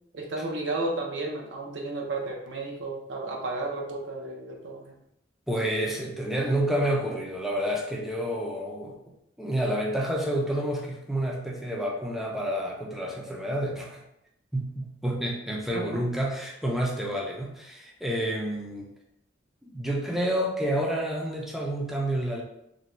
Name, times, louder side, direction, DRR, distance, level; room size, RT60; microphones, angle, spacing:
voice 1, 0.1-4.9 15.7-15.8, right 2 dB, 75° right, 0 dB, 0.6 m, -33 dB
voice 2, 5.5-9.0 9.4-14.0 14.5-18.9 19.6-22.4, right 1 dB, ahead, -2 dB, 0.4 m, -29 dB
2.6 x 2.2 x 3.0 m, 0.80 s
head